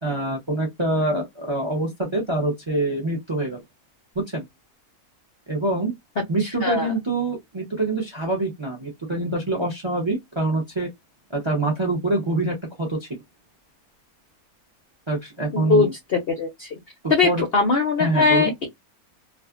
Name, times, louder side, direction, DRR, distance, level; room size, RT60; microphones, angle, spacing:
voice 1, 0.0-3.6 4.3-4.4 5.5-5.9 6.3-10.9 11.3-13.2 15.1-15.9 17.2-17.4 18.0-18.5, right 2 dB, 30° right, 0.5 m, -25 dB
voice 2, 15.5-16.7 17.1-18.7, left 4 dB, 60° left, 0.6 m, -21 dB
2.4 x 2.4 x 2.3 m
omnidirectional pair, 1.6 m